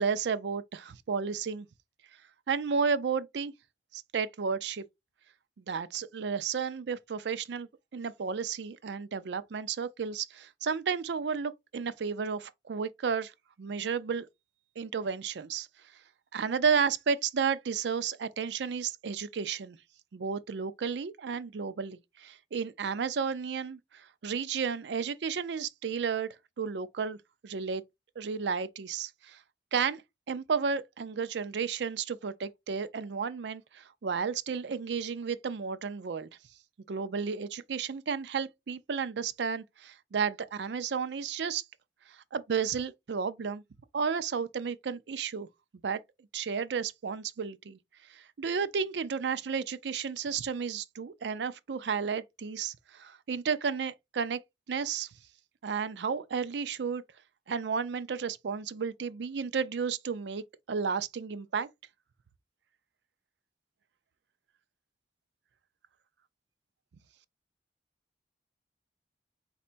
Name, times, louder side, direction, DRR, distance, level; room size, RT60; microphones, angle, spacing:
voice 1, 0.0-1.7 2.5-3.5 3.9-4.8 5.7-13.3 13.6-14.3 14.8-15.7 16.3-19.8 20.1-26.3 26.6-27.2 27.4-27.8 28.2-29.4 29.7-30.0 30.3-36.3 36.9-41.6 42.1-43.6 43.9-45.5 45.8-46.0 46.3-47.8 48.1-54.4 54.7-55.1 55.6-57.0 57.5-61.7, right 6 dB, 70° right, 0.4 m, -32 dB
4.4 x 4.2 x 2.5 m
head